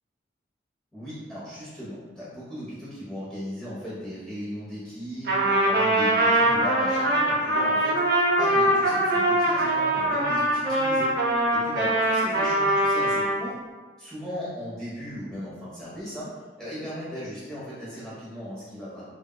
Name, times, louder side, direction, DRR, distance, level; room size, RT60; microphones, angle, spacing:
voice 1, 0.9-11.1 11.5-13.5 14.0-16.3 16.6-19.0, equal, 5° left, -11 dB, 1.2 m, -37 dB
Trumpet, 5.3-13.4, right 1 dB, 55° right, 0.7 m, -22 dB
3.4 x 2.7 x 2.3 m, 1.4 s
head